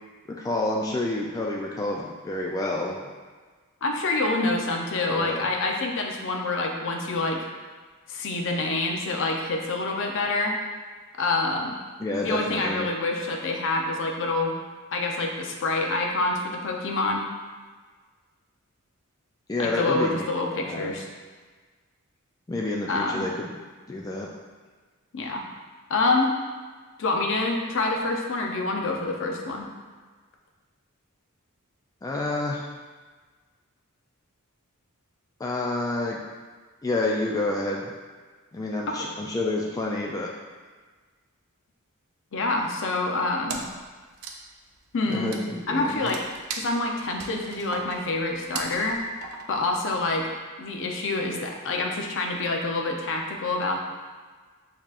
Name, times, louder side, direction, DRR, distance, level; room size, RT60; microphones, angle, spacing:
voice 1, 0.3-3.0 5.1-5.5 12.0-12.9 19.5-20.3 20.6-20.9 22.5-23.5 23.9-24.3 32.0-32.7 35.4-36.2 36.8-37.9 38.5-40.3 45.1-46.1, left 2 dB, 15° left, -2 dB, 0.3 m, -29 dB
voice 2, 3.8-7.4 8.1-10.6 11.2-11.7 12.2-14.6 14.9-17.3 19.6-21.1 22.9-23.3 25.1-25.4 25.9-26.3 27.0-29.7 38.9-39.1 42.3-43.6 44.9-45.3 45.7-46.2 46.5-49.0 49.5-50.3 50.6-53.8, left 2 dB, 60° left, 1 dB, 0.6 m, -27 dB
Wood, 43.5-43.8 44.1-49.7, right 4 dB, 85° right, 0.5 m, -38 dB
6.5 x 2.9 x 2.4 m, 1.4 s
head